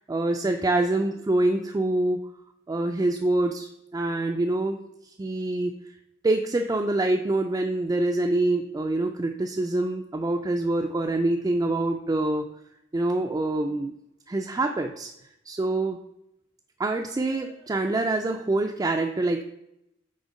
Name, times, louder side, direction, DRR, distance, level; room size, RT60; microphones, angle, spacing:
voice 1, 0.0-2.3 2.7-4.8 5.0-5.7 6.2-12.5 12.9-13.9 14.3-15.1 15.5-16.0 16.8-19.4, right 2 dB, 20° right, 2 dB, 0.3 m, -25 dB
6.2 x 3.7 x 5.2 m, 0.82 s
head